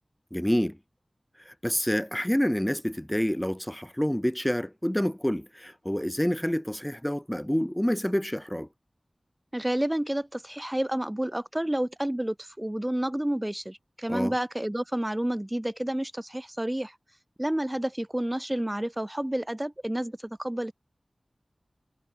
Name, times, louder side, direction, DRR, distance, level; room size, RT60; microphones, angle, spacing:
voice 1, 0.3-0.8 1.4-8.7 14.1-14.3, equal, 10° left, 2.6 m, -28 dB
voice 2, 9.5-16.9 17.4-20.7, right 1 dB, 15° right, 2.5 m, -30 dB
wide cardioid pair, 45°, 0 cm